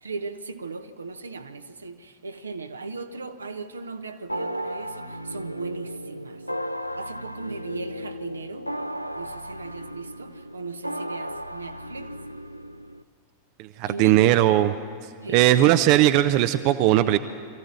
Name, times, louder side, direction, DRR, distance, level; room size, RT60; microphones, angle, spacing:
voice 1, 0.0-6.4 6.9-8.7 9.1-12.1 13.9-14.3 15.2-15.7, right 3 dB, 75° right, 1.0 m, -37 dB
sound 1, 4.3-13.0, equal, 90° left, 0.5 m, -35 dB
voice 2, 13.6-14.7 15.3-17.2, right 14 dB, 45° right, 0.7 m, -18 dB
23.5 x 14.5 x 9.6 m
figure-of-eight pair, 90°, 0 cm